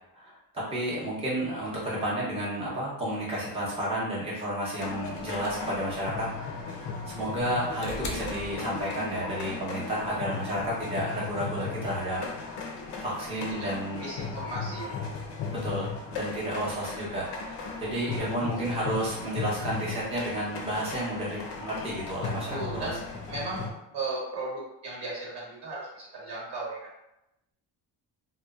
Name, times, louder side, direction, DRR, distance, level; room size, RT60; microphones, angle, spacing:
voice 1, 0.1-12.2 13.0-14.1 15.5-22.9, right 1 dB, 15° right, -7 dB, 0.7 m, -32 dB
sound 1, 4.8-23.7, left 4 dB, 90° left, 0.6 m, -37 dB
sound 2, 5.0-9.3 10.5-10.6, left 2 dB, 45° left, 0.4 m, -41 dB
voice 2, 14.0-15.0 18.1-18.5 22.5-23.0 23.3-26.9, right 2 dB, 70° right, -5 dB, 1.2 m, -36 dB
2.8 x 2.1 x 2.3 m, 0.88 s
cardioid pair, 125°, 43 cm